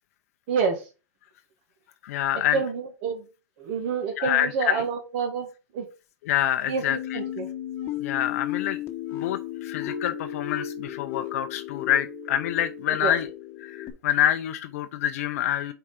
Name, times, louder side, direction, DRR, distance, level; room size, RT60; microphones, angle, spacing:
voice 1, 0.5-0.8 2.5-3.2 3.6-5.5 5.7-5.9 6.7-6.8 7.1-7.5 13.0-13.1, right 5 dB, 50° right, 1.7 m, -27 dB
voice 2, 2.0-2.6 4.2-4.8 6.2-7.2 8.0-8.8 9.1-13.3 13.6-15.7, left 11 dB, 65° left, 0.6 m, -26 dB
sound 1, 6.9-13.9, left 11 dB, 30° left, 1.1 m, -34 dB
4.9 x 4.5 x 5.6 m
supercardioid pair, 145°, 8 cm